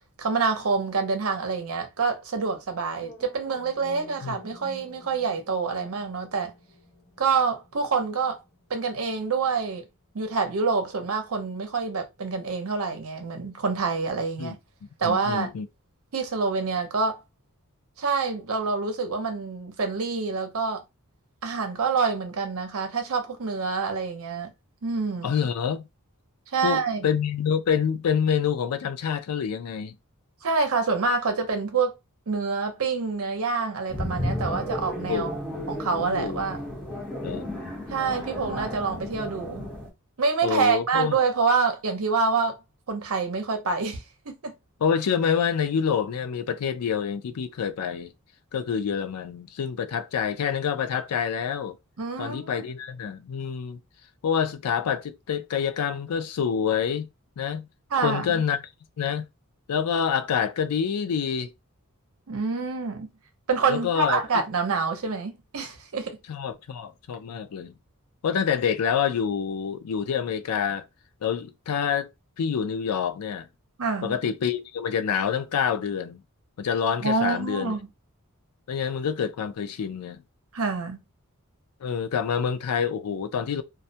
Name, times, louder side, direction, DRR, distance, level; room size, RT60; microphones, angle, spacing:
voice 1, 0.2-6.5 7.2-8.4 8.7-9.8 10.1-14.6 15.0-15.5 16.1-17.2 18.0-20.8 21.4-24.5 24.8-25.3 26.5-27.1 30.4-32.0 32.3-35.3 35.7-36.6 37.9-39.7 40.2-42.6 42.9-44.5 52.0-52.6 57.9-58.4 62.3-63.1 63.5-66.2 73.8-74.1 77.0-77.9 80.5-81.0, right 4 dB, 65° right, 0.7 m, -27 dB
sound 1, 2.9-11.0, left 1 dB, 55° left, 1.1 m, -52 dB
voice 2, 15.0-15.7 25.2-25.8 26.6-29.9 35.1-35.3 35.5-36.5 37.2-37.5 40.4-41.1 44.8-48.1 48.5-51.8 52.2-53.8 54.2-57.1 57.4-57.7 58.0-58.6 59.0-59.3 59.7-61.5 63.7-64.2 66.3-67.7 68.2-70.8 71.2-72.1 72.4-73.5 74.0-76.2 76.6-77.7 78.7-80.2 81.8-83.6, left 7 dB, 85° left, 0.4 m, -27 dB
sound 2, 33.9-39.9, left 1 dB, 5° left, 0.9 m, -33 dB
2.2 x 2.1 x 2.7 m
head